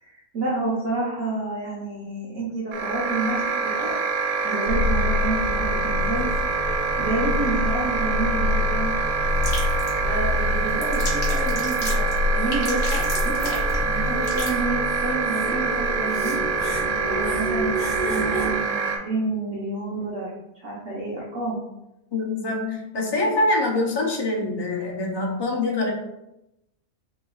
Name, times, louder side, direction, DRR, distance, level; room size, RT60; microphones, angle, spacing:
voice 1, 0.0-3.9 4.4-6.3 6.9-8.9 10.0-13.6 13.8-16.4 16.7-17.7 18.1-20.3 20.5-21.6, right 2 dB, 60° right, -6 dB, 1.2 m, -29 dB
sound 1, 2.7-19.0, right 4 dB, 85° right, 1.1 m, -26 dB
sound 2, 4.7-18.6, left 2 dB, 75° left, 1.4 m, -27 dB
sound 3, 9.3-14.5, left 2 dB, 50° left, 1.3 m, -33 dB
voice 2, 22.1-25.9, left 2 dB, 25° left, -1 dB, 0.5 m, -24 dB
6.2 x 3.0 x 2.3 m, 0.90 s
omnidirectional pair, 1.5 m